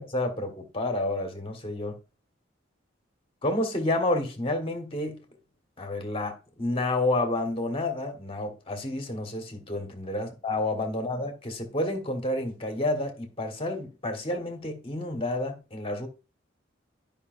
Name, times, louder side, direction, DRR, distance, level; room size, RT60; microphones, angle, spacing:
voice 1, 0.0-2.0 3.4-5.2 5.8-16.1, left 2 dB, 30° left, 1.4 m, -30 dB
11.0 x 5.4 x 2.6 m
head